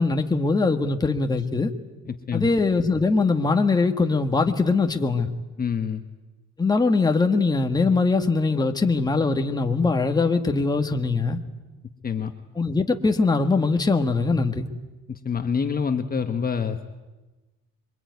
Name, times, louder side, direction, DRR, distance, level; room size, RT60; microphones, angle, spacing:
voice 1, 0.0-1.7 2.3-5.3 6.6-11.4 12.5-14.7, left 3 dB, 15° left, 1.6 m, -22 dB
voice 2, 2.1-2.5 5.6-6.0 12.0-12.3 15.1-16.9, left 6 dB, 30° left, 1.4 m, -26 dB
26.5 x 23.5 x 9.5 m
cardioid pair, 140°, 30 cm